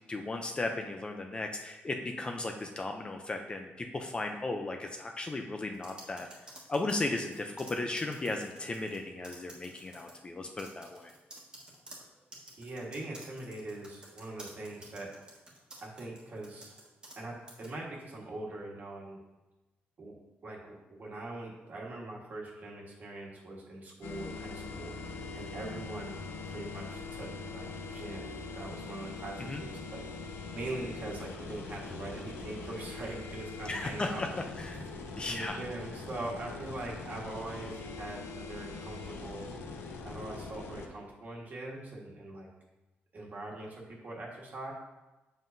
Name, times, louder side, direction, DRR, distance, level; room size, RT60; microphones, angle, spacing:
voice 1, 0.1-11.1 29.4-29.6 33.7-34.3 34.6-34.8 35.2-35.6, left 2 dB, 25° left, 4 dB, 0.5 m, -36 dB
sound 1, 5.7-9.0 9.2-10.2 10.6-17.2 17.5-17.7, right 1 dB, 20° right, 1.4 m, -51 dB
voice 2, 12.6-15.1 15.8-16.7 17.2-19.2 20.0-20.1 20.4-26.2 26.4-34.2 34.7-34.8 35.2-39.5 40.0-42.5 43.1-44.7, right 2 dB, 45° right, -2 dB, 1.5 m, -42 dB
sound 2, 24.0-40.9, left 4 dB, 80° left, 0.7 m, -42 dB
7.1 x 5.7 x 2.6 m, 1.1 s
cardioid pair, 135°, 4 cm